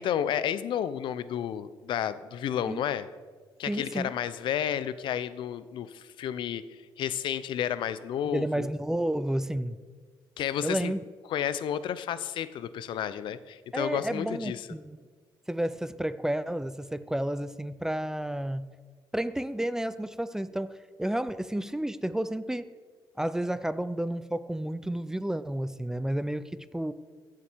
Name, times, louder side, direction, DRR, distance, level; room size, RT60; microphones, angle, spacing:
voice 1, 0.0-3.1 3.6-8.7 10.4-10.9 11.3-14.7, left 9 dB, 70° left, 15 dB, 0.6 m, -31 dB
voice 2, 3.7-4.1 8.2-9.8 10.6-11.0 13.7-15.0 15.5-18.7 19.1-22.7 23.2-26.9, right 1 dB, 5° right, 14 dB, 0.4 m, -31 dB
15.0 x 7.6 x 4.6 m, 1.5 s
cardioid pair, 100°, 8 cm